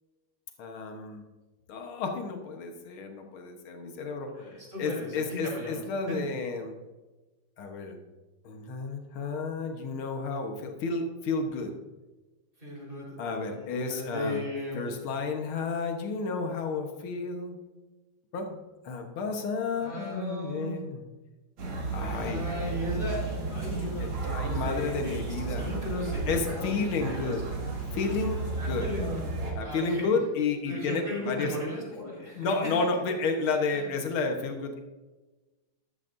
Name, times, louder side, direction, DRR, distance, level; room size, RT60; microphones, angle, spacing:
voice 1, 0.6-1.2 1.7-4.3 4.8-6.7 7.6-8.0 8.4-11.7 13.2-14.4 14.7-17.6 18.3-21.0 21.9-22.5 23.7-25.7 26.3-27.4 27.9-28.9 29.6-31.5 32.4-34.8, left 4 dB, 75° left, 4 dB, 2.1 m, -31 dB
voice 2, 4.3-6.2 12.6-14.9 19.7-20.8 22.1-25.2 25.5-27.3 28.6-29.2 29.6-30.1 30.7-32.7 33.7-33.9, left 1 dB, 25° right, -4 dB, 4.6 m, -36 dB
sound 1, 21.6-29.5, right 3 dB, 80° right, 3.1 m, -33 dB
13.0 x 12.5 x 2.7 m, 1.2 s
omnidirectional pair, 2.3 m